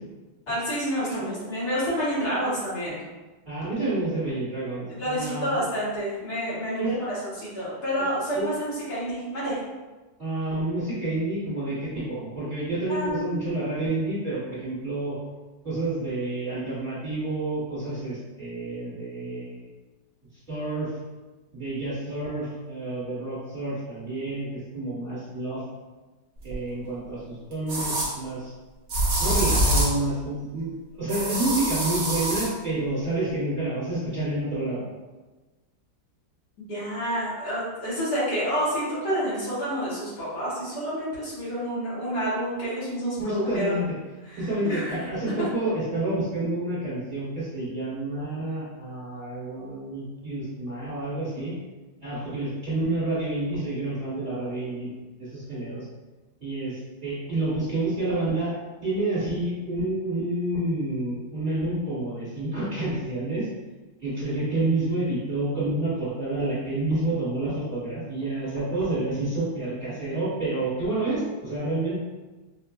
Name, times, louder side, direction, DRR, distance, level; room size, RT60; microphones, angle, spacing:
voice 1, 0.5-3.0 5.0-6.9 7.2-9.6 12.9-13.5 36.7-43.8 44.3-44.4 44.6-45.0, equal, 60° left, -9 dB, 1.7 m, -29 dB
voice 2, 3.5-5.7 6.8-7.0 8.0-8.1 8.3-8.5 10.2-15.2 15.6-19.6 20.5-20.9 21.5-25.6 26.4-28.5 29.2-34.8 43.2-44.0 44.4-51.5 52.0-55.9 56.4-58.6 58.8-63.5 64.0-72.0, right 2 dB, 30° right, -10 dB, 1.7 m, -29 dB
sound 1, 26.5-26.6 27.7-28.1 28.9-30.0 31.1-32.5, right 1 dB, 50° right, 0.9 m, -24 dB
5.0 x 2.5 x 2.3 m, 1.2 s
omnidirectional pair, 2.0 m